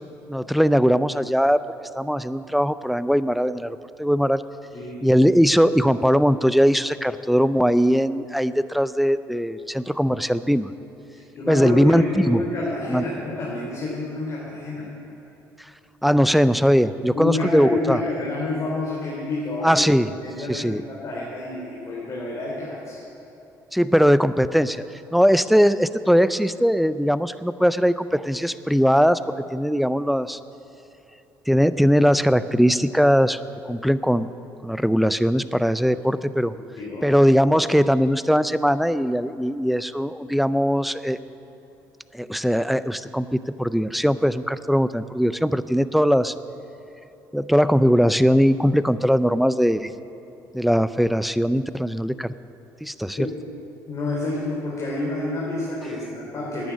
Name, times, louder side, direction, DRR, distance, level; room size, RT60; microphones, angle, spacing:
voice 1, 0.3-1.6 2.0-4.4 5.0-10.7 11.5-12.4 12.9-13.0 16.0-18.0 19.6-20.1 20.5-20.8 23.7-24.8 25.1-29.2 29.5-30.4 31.5-33.4 33.7-34.3 34.6-36.5 37.0-41.2 42.1-46.3 47.3-49.9 50.5-52.3 52.8-53.3, equal, ahead, 14 dB, 0.4 m, -20 dB
voice 2, 11.1-14.8 17.1-19.8 20.2-23.0 36.8-37.0 53.2-53.3 53.9-56.7, left 2 dB, 45° left, -5 dB, 3.2 m, -28 dB
10.5 x 9.3 x 9.2 m, 2.9 s
supercardioid pair, 85°, 7 cm